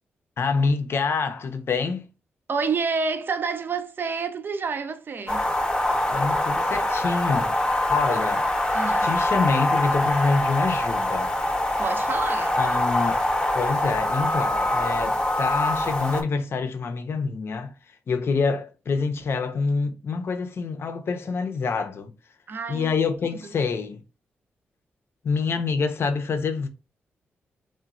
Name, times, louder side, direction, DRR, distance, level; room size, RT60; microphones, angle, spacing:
voice 1, 0.4-2.1 5.9-8.5 9.0-11.4 12.6-13.3 13.5-17.7 18.1-22.1 22.7-24.0 25.2-26.7, left 4 dB, 60° left, 0.5 m, -26 dB
voice 2, 2.5-5.5 8.7-9.1 11.8-12.6 22.5-22.9 23.2-23.5, right 5 dB, 50° right, 0.4 m, -29 dB
sound 1, 5.3-16.2, left 1 dB, 20° left, 0.7 m, -24 dB
3.0 x 2.2 x 2.4 m
supercardioid pair, 50°, 5 cm